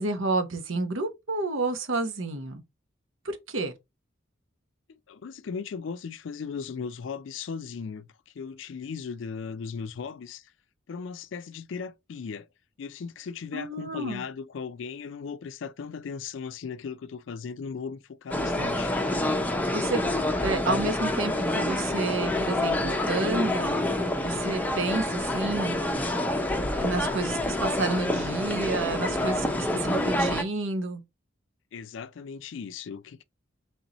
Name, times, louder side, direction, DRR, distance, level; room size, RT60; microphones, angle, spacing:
voice 1, 0.0-2.6 3.2-3.7 13.5-14.2 19.7-20.0 20.4-23.8 24.2-25.8 26.8-31.0, right 3 dB, 90° right, 1.0 m, -30 dB
voice 2, 5.1-8.1 8.4-10.4 10.9-12.5 12.8-18.9 31.7-33.2, left 6 dB, 70° left, 0.4 m, -37 dB
sound 1, 18.3-30.4, left 1 dB, 10° left, 0.6 m, -27 dB
4.0 x 3.7 x 2.9 m
head